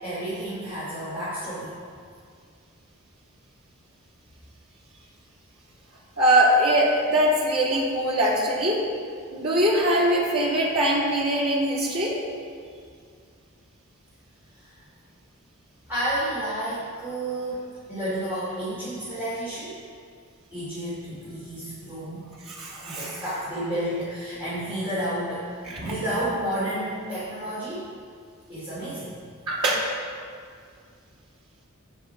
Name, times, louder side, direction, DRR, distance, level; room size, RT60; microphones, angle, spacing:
voice 1, 0.0-1.7 14.6-14.7 15.9-19.8 20.5-22.2 22.9-27.8 28.5-29.2, right 1 dB, 10° right, -13 dB, 3.3 m, -31 dB
voice 2, 6.2-8.8 9.3-12.1 22.5-23.2 25.6-25.9 29.5-29.8, right 1 dB, 85° right, -5 dB, 3.2 m, -22 dB
15.0 x 6.4 x 4.9 m, 2.2 s
head